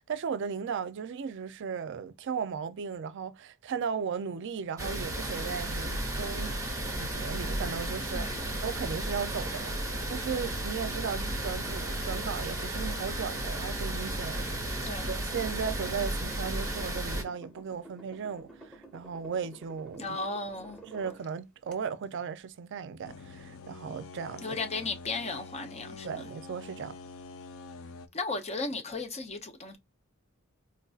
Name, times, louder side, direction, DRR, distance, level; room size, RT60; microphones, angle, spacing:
voice 1, 0.0-6.6 6.9-14.7 15.1-20.2 20.8-24.6 26.0-27.0, right 6 dB, 60° right, 0.4 m, -36 dB
sound 1, 4.8-17.2, right 1 dB, 15° right, 1.1 m, -34 dB
voice 2, 14.8-15.1 20.0-20.8 24.4-26.3 28.1-29.8, left 3 dB, 30° left, 0.7 m, -35 dB
sound 2, 15.3-21.2 21.7-21.8, right 2 dB, 5° left, 1.2 m, -51 dB
sound 3, 23.0-28.1, left 3 dB, 70° left, 0.5 m, -46 dB
4.5 x 2.5 x 2.4 m
head